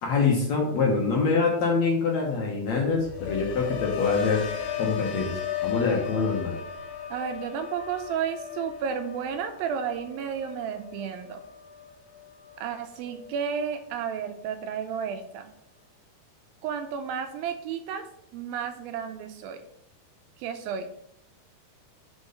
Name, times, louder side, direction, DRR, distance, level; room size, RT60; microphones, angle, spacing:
voice 1, 0.0-4.4 4.8-6.6, left 4 dB, 60° left, -1 dB, 1.9 m, -25 dB
sound 1, 2.8-12.8 13.2-13.6, left 8 dB, 80° left, 2.8 m, -36 dB
voice 2, 7.1-11.4 12.6-15.5 16.6-18.1 18.3-19.6 20.4-20.9, right 7 dB, 80° right, 7 dB, 2.3 m, -32 dB
6.2 x 5.4 x 6.6 m, 0.72 s
omnidirectional pair, 4.5 m